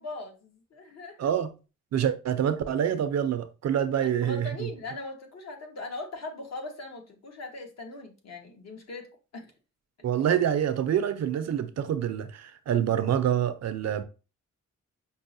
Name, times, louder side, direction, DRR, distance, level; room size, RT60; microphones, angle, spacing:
voice 1, 0.0-1.3 1.9-2.0 4.0-9.1 9.3-9.5, left 2 dB, 60° left, 1.0 m, -40 dB
voice 2, 1.2-1.5 1.9-4.7 10.0-14.0, right 9 dB, 60° right, 0.5 m, -26 dB
5.3 x 2.1 x 2.5 m
cardioid pair, 110°, 30 cm